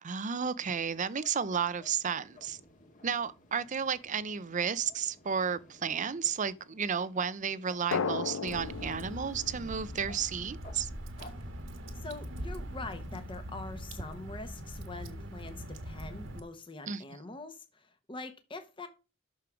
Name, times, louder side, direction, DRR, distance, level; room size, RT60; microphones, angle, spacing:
voice 1, 0.0-2.6 3.0-10.9 16.9-17.0, right 7 dB, 40° right, 0.6 m, -32 dB
sound 1, 0.9-11.6, left 2 dB, 40° left, 1.7 m, -58 dB
Drum, 7.9-10.6, left 5 dB, 85° left, 0.6 m, -36 dB
Water / Drip, 8.5-16.4, equal, 70° right, 1.6 m, -42 dB
voice 2, 11.9-15.5 15.8-18.9, left 3 dB, 25° left, 1.1 m, -44 dB
6.8 x 6.5 x 6.0 m
head